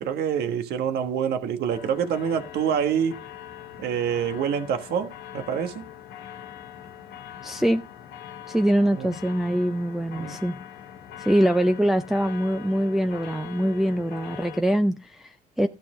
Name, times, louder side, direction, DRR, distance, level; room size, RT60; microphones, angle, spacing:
voice 1, 0.0-3.2 3.8-5.9 8.9-9.2 10.1-10.4, right 8 dB, 70° right, 1.3 m, -26 dB
sound 1, 1.7-14.6, left 10 dB, 70° left, 1.0 m, -42 dB
voice 2, 7.4-7.8 8.5-10.6 11.2-15.7, equal, ahead, 0.4 m, -23 dB
13.0 x 5.8 x 3.8 m
cardioid pair, 110°, 17 cm